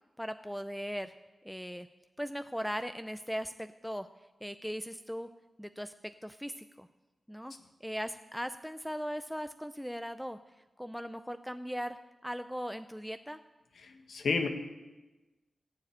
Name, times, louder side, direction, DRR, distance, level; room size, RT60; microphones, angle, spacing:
voice 1, 0.2-1.1 1.4-1.9 2.2-4.1 4.4-5.3 5.6-5.9 6.2-6.9 7.3-7.5 7.8-10.4 10.8-12.0 12.2-13.4, equal, ahead, 10 dB, 0.4 m, -38 dB
voice 2, 13.8-14.5, left 4 dB, 85° left, 5 dB, 1.6 m, -31 dB
16.0 x 7.6 x 8.6 m, 1.1 s
wide cardioid pair, 175°, 0 cm